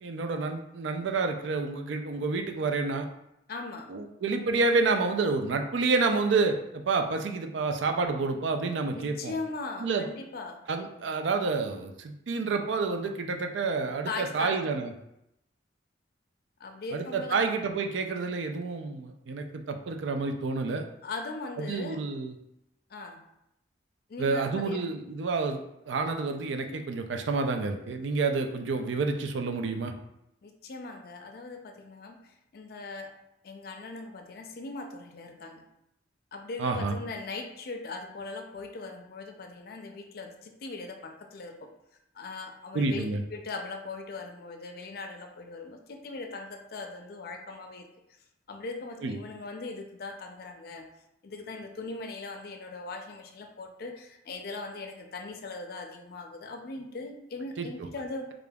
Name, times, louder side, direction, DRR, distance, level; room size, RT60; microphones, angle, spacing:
voice 1, 0.0-3.1 3.9-9.3 9.8-10.1 10.7-14.9 16.9-20.8 21.6-22.3 24.2-25.6 25.9-29.9 36.6-36.9 42.7-43.2 49.0-49.2 57.6-57.7, right 4 dB, 85° right, 5 dB, 0.4 m, -29 dB
voice 2, 3.5-3.9 8.9-10.6 14.1-14.6 16.6-17.5 21.0-22.0 22.9-23.3 24.1-24.8 30.4-33.1 33.4-35.7 36.3-41.7 42.1-43.0 43.3-47.9 48.5-50.9 51.2-58.3, left 3 dB, 55° left, 4 dB, 0.4 m, -39 dB
5.0 x 2.4 x 2.3 m, 0.82 s
head